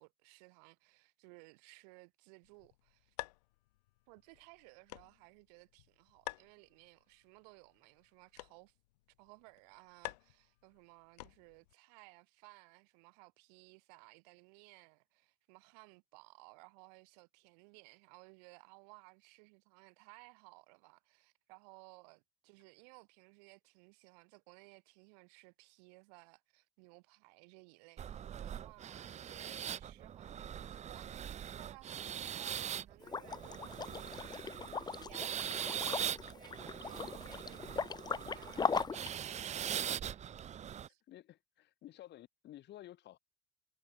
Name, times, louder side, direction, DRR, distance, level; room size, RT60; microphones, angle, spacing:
voice 1, 0.0-3.2 4.1-8.8 9.2-40.4 40.8-41.0, right 32 dB, 75° right, 2.7 m, -60 dB
sound 1, 2.4-11.7, left 20 dB, 85° left, 1.5 m, -52 dB
sound 2, 28.0-40.9, right 9 dB, 35° right, 0.6 m, -42 dB
Liquid, 33.0-39.1, left 5 dB, 20° left, 0.6 m, -39 dB
voice 2, 41.1-43.2, left 13 dB, 60° left, 7.5 m, -53 dB
hypercardioid pair, 70°, 20 cm